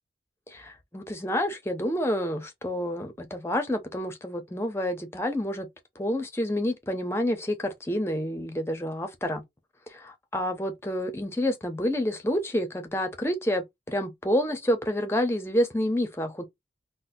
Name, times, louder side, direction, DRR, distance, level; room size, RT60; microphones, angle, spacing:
voice 1, 0.5-5.7 6.0-9.4 9.9-16.5, equal, 15° left, 0.6 m, -28 dB
4.0 x 2.1 x 2.6 m
head